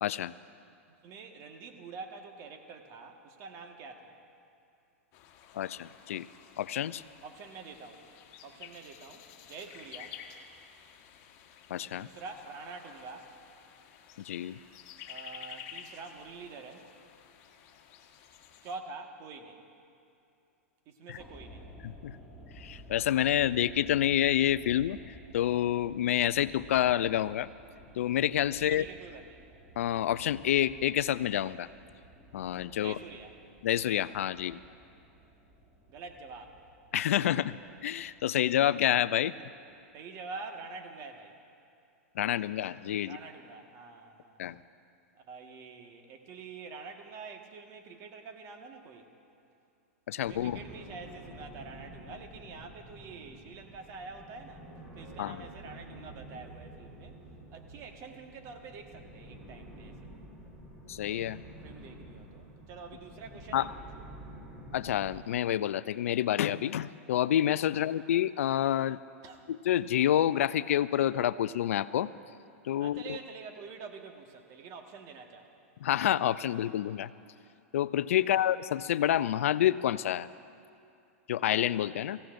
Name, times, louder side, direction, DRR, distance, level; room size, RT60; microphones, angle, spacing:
voice 1, 0.0-0.3 5.5-6.3 6.6-7.0 11.7-12.1 14.2-14.6 21.1-21.2 21.8-22.1 22.6-25.0 25.3-27.5 28.0-28.8 29.8-31.7 32.3-33.0 33.6-34.6 36.9-37.6 37.8-39.3 42.2-43.2 44.4-44.6 50.1-50.6 55.2-55.4 60.9-61.4 63.5-63.7 64.7-69.0 69.5-72.1 72.6-73.2 75.8-77.1 77.7-80.3 81.3-82.2, left 11 dB, 75° left, 16 dB, 0.4 m, -28 dB
voice 2, 0.9-4.2 7.2-8.0 8.4-10.2 11.9-13.3 15.1-16.9 18.6-19.6 20.8-21.7 28.6-29.4 32.8-33.3 35.9-36.6 39.9-41.4 43.0-44.4 45.1-49.1 50.2-54.7 54.9-57.2 57.5-60.1 61.6-64.0 67.7-67.8 69.2-69.4 72.8-75.5 78.2-78.5, right 4 dB, 45° right, 4 dB, 1.6 m, -46 dB
sound 1, 5.1-18.8, left 9 dB, 50° left, 1.3 m, -51 dB
sound 2, 21.2-39.4 39.6-39.7, right 1 dB, 5° right, 3.9 m, -53 dB
sound 3, 50.2-65.2, right 1 dB, 20° right, 4.3 m, -49 dB
24.0 x 15.5 x 2.6 m, 2.5 s
hypercardioid pair, 110°, 8 cm